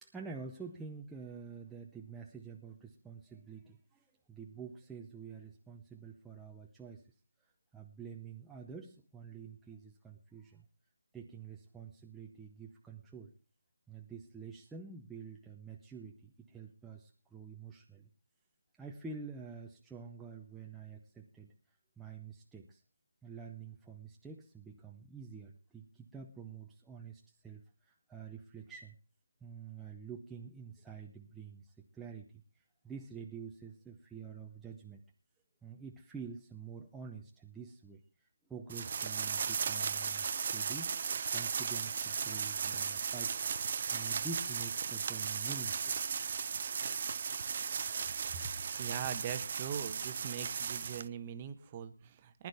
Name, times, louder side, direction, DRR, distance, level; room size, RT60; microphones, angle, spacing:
voice 1, 0.0-7.0 7.7-10.7 11.1-13.3 13.9-18.1 18.8-21.5 22.0-22.8 23.2-29.0 29.4-32.4 32.8-35.0 35.6-41.0 41.3-46.0, right 5 dB, 5° right, -1 dB, 0.8 m, -48 dB
sound 1, 38.7-51.1, right 6 dB, 40° right, 0.6 m, -36 dB
voice 2, 48.8-52.5, right 8 dB, 20° right, 10 dB, 1.1 m, -41 dB
19.5 x 11.0 x 3.5 m, 0.32 s
figure-of-eight pair, 165°, 0 cm